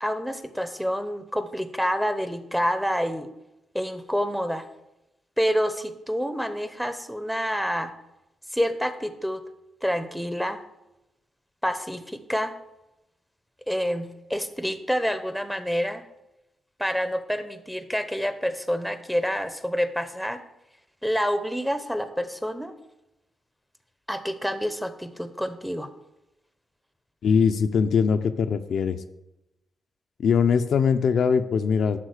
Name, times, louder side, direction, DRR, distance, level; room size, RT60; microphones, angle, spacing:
voice 1, 0.0-3.3 3.7-4.6 5.4-7.9 8.5-9.4 9.8-10.6 11.6-12.5 13.7-16.0 16.8-20.4 21.0-22.7 24.1-25.9, equal, ahead, 10 dB, 0.8 m, -28 dB
voice 2, 27.2-29.0 30.2-32.0, left 6 dB, 70° left, 8 dB, 0.6 m, -21 dB
11.0 x 3.8 x 6.5 m, 0.92 s
cardioid pair, 85°, 0 cm